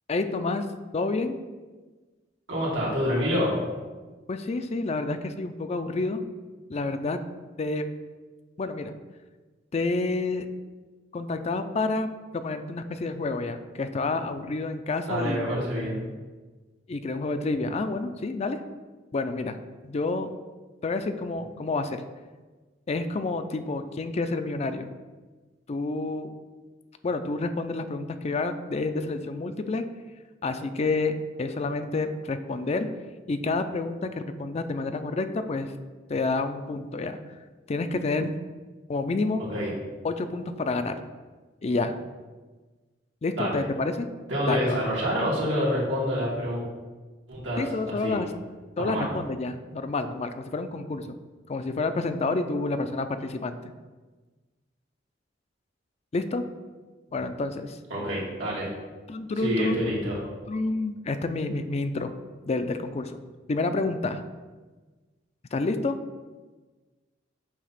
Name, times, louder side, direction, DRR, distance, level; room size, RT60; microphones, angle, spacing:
voice 1, 0.1-0.7 0.9-1.4 4.3-6.2 6.7-7.2 7.6-7.9 8.6-8.9 9.7-10.5 11.1-15.4 16.9-18.6 19.1-19.6 19.8-20.3 20.8-22.0 22.9-24.9 25.7-26.3 27.0-29.8 30.4-32.9 33.3-35.7 36.1-37.2 37.7-38.4 38.9-39.4 40.0-41.0 41.6-42.0 43.2-44.1 44.5-44.8 47.6-48.3 48.8-51.1 51.5-53.7 56.1-56.4 57.1-57.8 59.1-59.8 60.5-62.1 62.5-63.2 63.5-64.2 65.5-66.0, left 3 dB, 35° left, 9 dB, 0.4 m, -29 dB
voice 2, 2.5-3.6 15.1-16.0 39.5-39.7 43.4-43.6 44.3-46.6 47.3-48.2 48.8-49.1 57.9-58.7 59.4-60.2, equal, 90° right, -5 dB, 2.2 m, -27 dB
8.2 x 2.9 x 5.7 m, 1.3 s
head